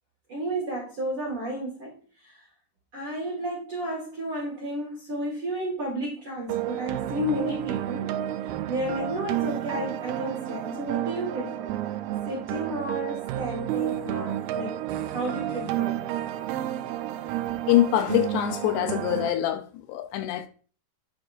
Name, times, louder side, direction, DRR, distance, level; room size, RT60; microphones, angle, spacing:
voice 1, 0.3-2.5 2.9-11.7 12.2-16.0, right 1 dB, 50° right, 1.6 m, -32 dB
sound 1, 6.5-19.3, right 13 dB, 90° right, 2.2 m, -31 dB
voice 2, 17.7-20.5, left 13 dB, 80° left, 2.7 m, -24 dB
10.5 x 4.7 x 2.5 m
omnidirectional pair, 5.0 m